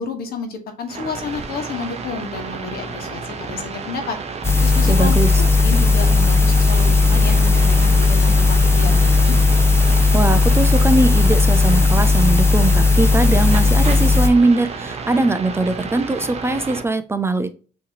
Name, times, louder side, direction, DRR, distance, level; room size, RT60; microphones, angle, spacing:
voice 1, 0.0-4.2 4.6-5.1 5.6-9.4, left 5 dB, 65° left, 6 dB, 1.2 m, -30 dB
sound 1, 0.9-16.8, right 5 dB, 40° right, 0.8 m, -31 dB
sound 2, 4.4-14.3, left 3 dB, 15° left, 0.7 m, -15 dB
voice 2, 4.9-5.3 10.1-17.5, right 2 dB, 15° right, 10 dB, 0.4 m, -20 dB
6.3 x 2.9 x 2.8 m, 0.37 s
cardioid pair, 110°, 17 cm